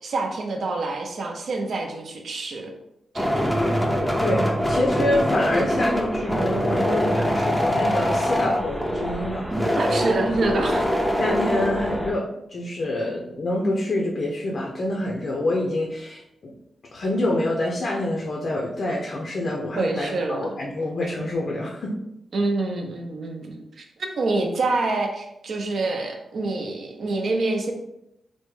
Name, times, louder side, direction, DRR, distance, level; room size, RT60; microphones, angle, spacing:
voice 1, 0.0-2.7 3.1-3.5 9.8-10.9 19.8-20.5 22.3-27.7, right 2 dB, 65° right, 3 dB, 0.5 m, -26 dB
sound 1, 3.2-12.1, equal, ahead, 0.5 m, -24 dB
voice 2, 4.2-9.8 11.2-16.5 16.9-22.0, left 1 dB, 50° left, -2 dB, 0.5 m, -26 dB
3.4 x 2.1 x 3.1 m, 0.83 s
cardioid pair, 100°, 0 cm